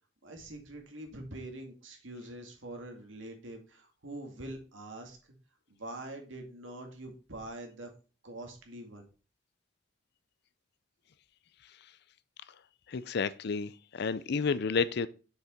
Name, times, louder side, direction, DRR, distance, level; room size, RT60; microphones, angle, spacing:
voice 1, 0.2-5.2 5.7-7.9 8.2-9.1, right 1 dB, 85° right, 2.2 m, -44 dB
voice 2, 12.9-15.1, left 5 dB, 60° left, 0.5 m, -31 dB
6.6 x 5.8 x 4.3 m
head